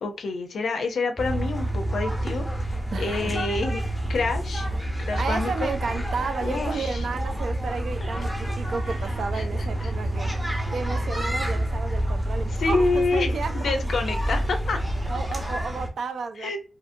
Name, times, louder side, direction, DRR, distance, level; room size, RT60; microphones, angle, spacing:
voice 1, 0.0-3.8 4.1-4.7 5.1-5.7 6.4-7.0 9.3-9.4 9.8-9.9 12.6-14.8 16.4-16.6, left 3 dB, 90° left, 0.4 m, -27 dB
sound 1, 1.2-15.9, right 1 dB, 10° right, 0.7 m, -28 dB
voice 2, 2.9-3.3 4.0-4.2 5.2-10.3 10.7-13.9 15.1-16.6, right 4 dB, 80° right, 0.4 m, -32 dB
sound 2, 4.0-15.6, right 1 dB, 50° right, 0.8 m, -44 dB
2.7 x 2.5 x 2.5 m
wide cardioid pair, 115°, 0 cm